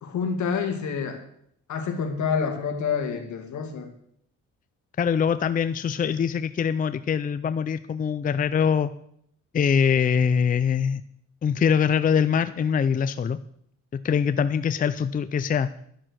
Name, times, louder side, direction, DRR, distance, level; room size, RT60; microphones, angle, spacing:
voice 1, 0.0-1.2 1.7-3.9, left 6 dB, 70° left, 5 dB, 2.1 m, -27 dB
voice 2, 5.0-8.9 9.5-11.0 11.4-13.4 14.0-15.7, left 7 dB, 30° left, 12 dB, 0.5 m, -23 dB
11.5 x 6.2 x 6.3 m, 0.69 s
cardioid pair, 90°, 30 cm